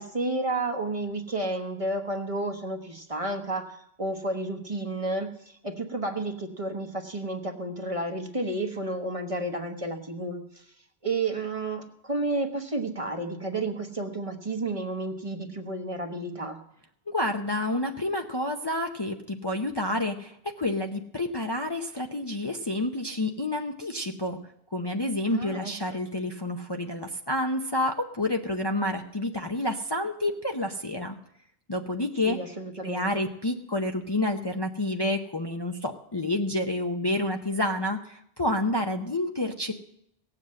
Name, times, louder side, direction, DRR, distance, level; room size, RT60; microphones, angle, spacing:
voice 1, 0.0-10.6 11.0-16.6 25.3-25.7 32.2-33.1, right 2 dB, 30° right, 5 dB, 1.1 m, -31 dB
voice 2, 17.1-24.4 24.7-31.2 31.7-32.4 32.8-39.7, left 1 dB, 25° left, 3 dB, 0.7 m, -29 dB
17.5 x 7.7 x 7.6 m, 0.74 s
omnidirectional pair, 1.1 m